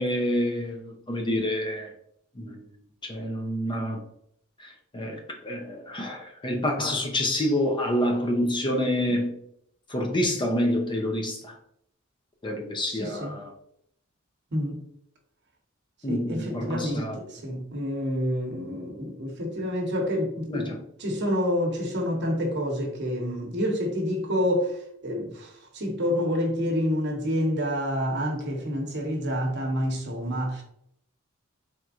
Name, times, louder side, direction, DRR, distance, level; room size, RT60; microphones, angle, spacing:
voice 1, 0.0-1.9 2.4-2.6 3.0-4.0 4.6-9.4 9.9-11.5 12.4-13.5 16.0-17.2 20.5-20.7, left 1 dB, 25° left, 0.6 m, -27 dB
voice 2, 12.9-13.4 14.5-14.8 16.1-30.6, equal, 55° right, 1.0 m, -28 dB
4.3 x 3.5 x 2.4 m
head